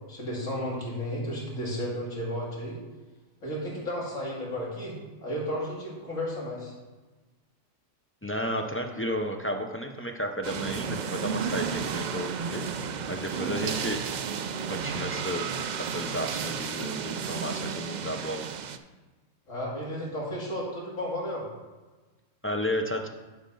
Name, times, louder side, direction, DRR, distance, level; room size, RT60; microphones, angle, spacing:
voice 1, 0.1-2.8 3.4-6.7 19.5-21.4, equal, 75° left, -5 dB, 3.2 m, -33 dB
voice 2, 8.2-12.7 13.1-14.0 14.7-18.4 22.4-23.1, equal, 15° left, 3 dB, 0.5 m, -33 dB
sound 1, 10.4-18.8, right 6 dB, 65° right, 0.4 m, -32 dB
10.5 x 4.4 x 5.5 m, 1.2 s
omnidirectional pair, 1.3 m